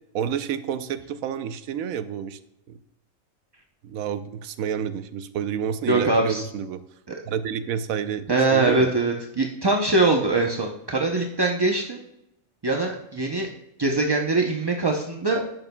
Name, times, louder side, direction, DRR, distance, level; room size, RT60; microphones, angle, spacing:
voice 1, 0.1-2.4 2.7-2.8 3.8-6.8 7.2-8.9, right 8 dB, 80° right, 12 dB, 1.0 m, -29 dB
voice 2, 5.9-6.4 8.3-12.0 12.6-13.5 13.8-15.4, right 2 dB, 35° right, 1 dB, 0.4 m, -22 dB
10.5 x 8.0 x 2.2 m, 0.85 s
omnidirectional pair, 1.4 m